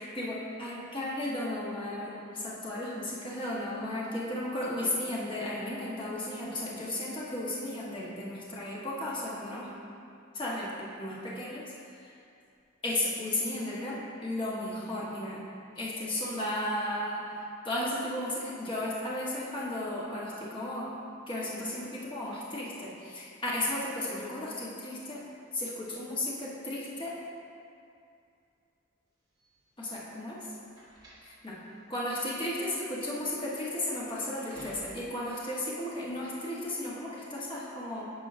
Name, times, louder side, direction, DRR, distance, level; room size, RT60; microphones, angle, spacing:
voice 1, 0.0-9.7 10.3-10.7 11.0-11.6 11.9-12.1 12.8-15.4 15.8-20.9 21.3-25.2 25.5-27.1 29.8-30.5 31.2-31.6 31.9-38.1, left 1 dB, 25° left, -6 dB, 1.1 m, -34 dB
sound 1, 29.4-35.3, equal, 20° right, 1.5 m, -53 dB
9.3 x 5.5 x 2.6 m, 2.5 s
head